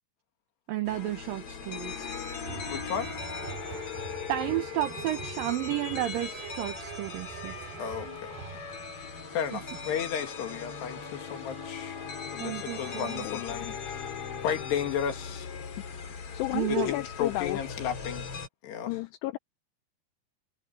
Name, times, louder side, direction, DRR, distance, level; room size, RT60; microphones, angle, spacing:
voice 1, 0.7-2.1 4.3-7.5 9.5-9.6 12.4-13.2 16.5-16.9, right 14 dB, 85° right, 2.0 m, -32 dB
sound 1, 0.8-18.5, left 6 dB, 40° left, 2.7 m, -39 dB
sound 2, 2.4-8.7, right 9 dB, 65° right, 3.6 m, -44 dB
voice 2, 2.7-3.2 7.8-8.3 9.3-12.0 12.3-14.1 14.4-15.5 16.7-18.3 18.6-19.0, left 8 dB, 65° left, 4.1 m, -33 dB
sound 3, 6.6-13.4, equal, 5° right, 2.9 m, -49 dB
voice 3, 16.3-17.6 18.9-19.4, left 19 dB, 85° left, 2.4 m, -32 dB
omnidirectional pair, 5.3 m